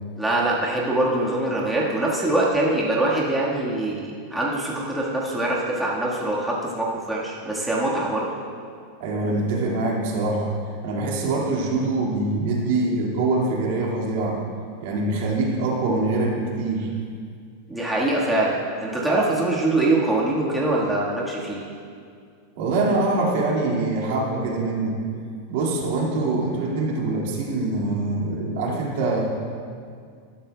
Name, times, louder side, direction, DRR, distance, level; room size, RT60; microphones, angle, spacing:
voice 1, 0.2-8.3 17.7-21.6, right 2 dB, 5° right, -5 dB, 1.4 m, -23 dB
voice 2, 9.0-10.5 10.8-14.4 14.8-16.9 22.6-25.0 25.5-29.2, right 2 dB, 65° right, -2 dB, 2.0 m, -24 dB
12.5 x 11.5 x 2.2 m, 2.2 s
supercardioid pair, 140°, 0 cm